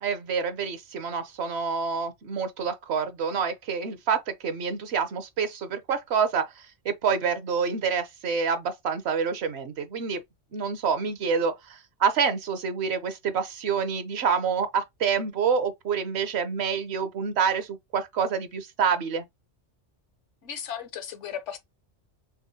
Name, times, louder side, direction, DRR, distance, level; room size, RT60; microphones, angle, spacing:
voice 1, 0.0-10.2 10.5-19.3, right 6 dB, 65° right, 0.9 m, -27 dB
voice 2, 20.4-21.6, left 8 dB, 75° left, 1.1 m, -35 dB
3.6 x 3.4 x 2.7 m
omnidirectional pair, 1.3 m